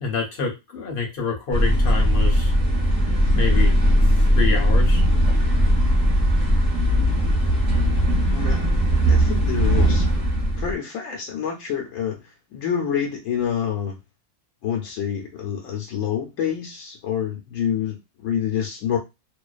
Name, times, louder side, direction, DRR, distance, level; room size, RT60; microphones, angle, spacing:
voice 1, 0.0-2.5 3.3-3.7 4.3-5.0, left 5 dB, 50° left, 1 dB, 0.8 m, -27 dB
sound 1, 1.5-10.7, equal, 35° right, 0.8 m, -19 dB
voice 2, 8.3-8.6 9.1-10.1 10.6-12.2 12.5-14.0 14.6-19.0, left 8 dB, 90° left, 1 dB, 1.0 m, -27 dB
2.5 x 2.2 x 2.3 m, 0.24 s
omnidirectional pair, 1.3 m